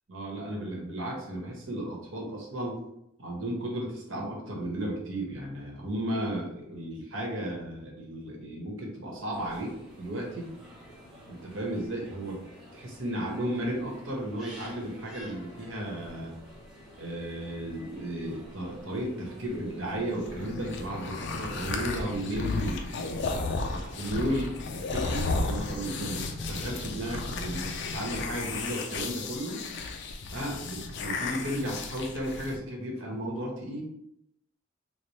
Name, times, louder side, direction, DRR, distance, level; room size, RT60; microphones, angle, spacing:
voice 1, 0.1-2.8 3.2-10.5 11.3-12.4 12.7-16.4 17.0-23.4 23.7-29.6 30.3-33.8, right 1 dB, 80° right, -1 dB, 1.0 m, -34 dB
sound 1, 9.3-28.7, equal, ahead, 1.0 m, -50 dB
sound 2, 20.2-32.6, left 3 dB, 60° left, 0.4 m, -34 dB
3.2 x 2.0 x 4.0 m, 0.79 s
head